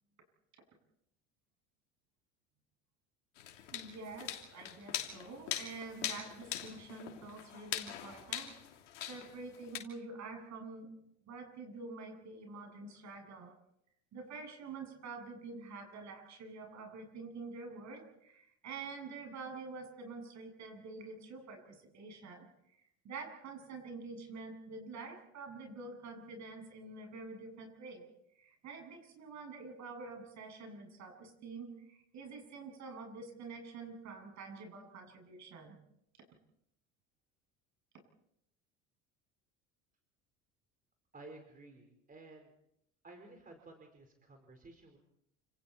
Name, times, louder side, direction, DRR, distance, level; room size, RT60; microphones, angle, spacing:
sound 1, 3.4-9.8, left 11 dB, 80° left, 3.1 m, -42 dB
voice 1, 3.7-8.5 9.1-10.9 11.3-13.5 14.1-22.5 23.0-28.1 28.4-35.8, right 3 dB, 50° right, 3 dB, 7.9 m, -47 dB
voice 2, 41.1-42.5 43.0-45.0, right 2 dB, 25° right, 4 dB, 4.5 m, -54 dB
29.5 x 27.0 x 4.5 m, 0.76 s
hypercardioid pair, 70°, 36 cm